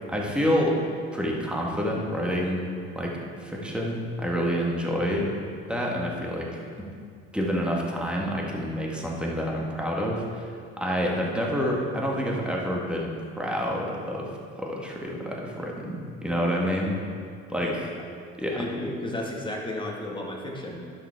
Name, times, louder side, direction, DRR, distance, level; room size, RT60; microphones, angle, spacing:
voice 1, 0.1-0.8 1.1-2.6 3.0-5.3 5.7-6.9 7.3-13.1 13.4-14.3 14.6-17.0 17.5-17.9 18.4-18.6, equal, 5° right, -2 dB, 1.9 m, -28 dB
voice 2, 18.5-21.0, left 1 dB, 15° left, -1 dB, 1.9 m, -33 dB
11.0 x 6.0 x 4.6 m, 2.3 s
supercardioid pair, 75°, 31 cm